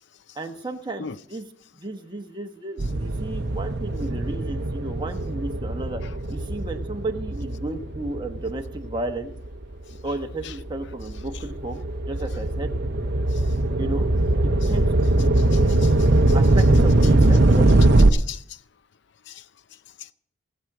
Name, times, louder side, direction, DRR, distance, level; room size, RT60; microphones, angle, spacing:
voice 1, 0.3-1.4 1.7-6.0 6.3-9.3 10.0-12.7 13.7-14.1 14.7-15.4 16.3-18.0, right 2 dB, 20° right, 1.1 m, -33 dB
sound 1, 2.8-9.5 10.1-18.1, right 2 dB, 50° right, 0.7 m, -21 dB
voice 2, 15.4-16.1 18.1-18.6 19.3-19.4 20.0-20.1, left 8 dB, 55° left, 0.5 m, -38 dB
18.5 x 7.4 x 4.8 m
head